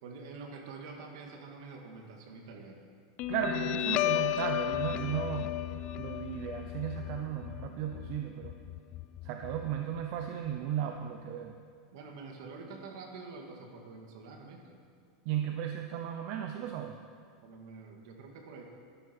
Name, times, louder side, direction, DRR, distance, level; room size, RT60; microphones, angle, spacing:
voice 1, 0.0-2.8 11.9-14.8 17.4-18.6, right 4 dB, 65° right, 2 dB, 1.9 m, -47 dB
Guitar, 3.2-10.2, left 13 dB, 35° left, 0.4 m, -34 dB
voice 2, 3.3-5.5 6.0-8.6 9.2-11.5 15.3-17.0, right 9 dB, 45° right, 4 dB, 0.7 m, -35 dB
14.0 x 12.0 x 4.5 m, 2.1 s
supercardioid pair, 165°, 3 cm